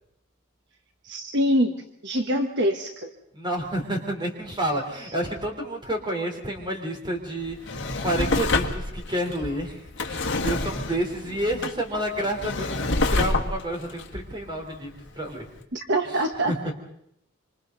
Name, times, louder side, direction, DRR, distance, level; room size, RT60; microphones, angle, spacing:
voice 1, 1.0-1.7 2.0-3.1 15.7-16.7, equal, 55° right, 5 dB, 1.3 m, -24 dB
voice 2, 3.3-15.5 16.1-16.7, right 1 dB, 20° right, 2 dB, 3.7 m, -30 dB
Drawer open or close, 7.4-15.1 15.6-15.7, left 2 dB, 55° left, 2.0 m, -28 dB
26.5 x 26.5 x 4.0 m, 0.73 s
head